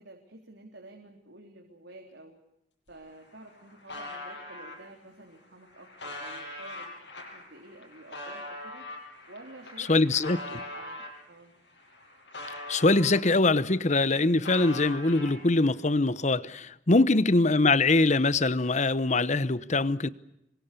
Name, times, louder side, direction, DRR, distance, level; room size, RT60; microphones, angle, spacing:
voice 1, 0.0-2.4 2.9-8.8 9.3-11.5 16.9-17.3, right 2 dB, 90° right, 3.5 m, -50 dB
sound 1, 2.9-3.0 3.2-4.8 5.4-11.2 11.6-13.6 13.9-15.7, left 2 dB, 80° left, 7.2 m, -42 dB
voice 2, 9.8-10.6 12.7-20.1, left 2 dB, 40° left, 1.0 m, -23 dB
27.0 x 24.5 x 6.8 m
head